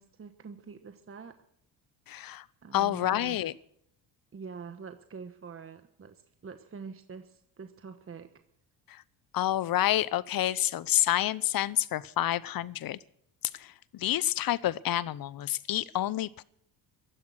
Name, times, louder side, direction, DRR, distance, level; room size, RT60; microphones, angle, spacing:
voice 1, 0.0-1.3 2.6-3.4 4.3-8.3, right 5 dB, 25° right, 1.3 m, -45 dB
voice 2, 2.1-2.4 2.7-3.5 8.9-9.0 9.3-13.0 13.5-16.4, left 13 dB, 45° left, 0.9 m, -28 dB
16.0 x 13.0 x 6.4 m
supercardioid pair, 70°, 47 cm